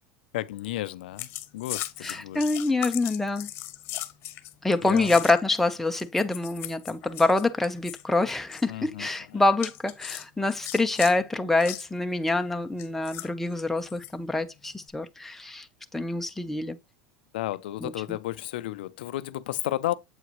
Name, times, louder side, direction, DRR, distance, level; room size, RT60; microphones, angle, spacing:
voice 1, 0.3-2.5 4.8-5.1 8.7-9.4 17.3-19.9, left 15 dB, 85° left, 0.4 m, -33 dB
sound 1, 1.2-5.6 6.0-8.0 8.3-8.6 9.6-11.1 11.6-11.9 12.8-14.1 14.7-14.9, left 15 dB, 50° left, 1.0 m, -38 dB
voice 2, 2.0-3.5 4.6-15.7 15.9-16.8 17.8-18.2, left 2 dB, 5° left, 0.7 m, -26 dB
8.0 x 4.7 x 3.0 m
supercardioid pair, 120°, 5 cm